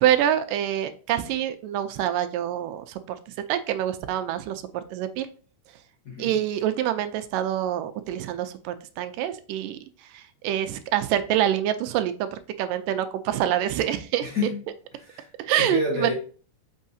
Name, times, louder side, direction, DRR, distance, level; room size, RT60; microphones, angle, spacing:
voice 1, 0.0-3.2 3.5-5.3 6.2-9.8 10.1-14.3 15.4-16.1, right 11 dB, 80° right, 2.2 m, -26 dB
voice 2, 6.0-6.4 14.2-14.6 14.9-15.3 15.6-16.1, left 3 dB, 55° left, 1.2 m, -29 dB
6.3 x 5.6 x 2.7 m
omnidirectional pair, 3.9 m